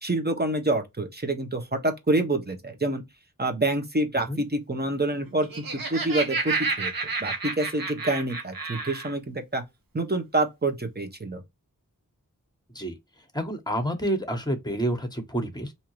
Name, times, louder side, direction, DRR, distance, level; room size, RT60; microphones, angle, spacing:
voice 1, 0.0-3.0 3.4-6.9 7.2-9.6 9.9-11.4, right 2 dB, 30° right, 1.1 m, -27 dB
Laughter, 5.3-9.1, right 4 dB, 80° right, 1.0 m, -30 dB
voice 2, 13.3-15.7, right 1 dB, 10° left, 1.2 m, -28 dB
3.6 x 2.9 x 3.1 m
wide cardioid pair, 55°, 34 cm